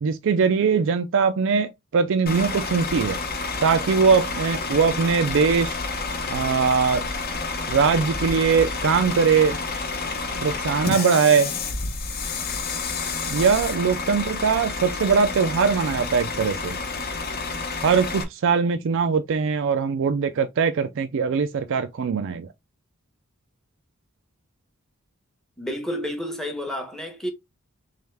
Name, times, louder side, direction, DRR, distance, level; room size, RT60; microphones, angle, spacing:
voice 1, 0.0-3.2 3.6-5.8 6.3-7.1 7.7-9.6 10.4-11.5 13.3-16.8 17.7-22.5, right 5 dB, 60° right, 0.4 m, -21 dB
Bus / Idling, 2.3-18.2, left 4 dB, 45° left, 0.8 m, -29 dB
voice 2, 25.6-27.3, equal, ahead, 0.8 m, -30 dB
3.4 x 3.1 x 3.3 m
head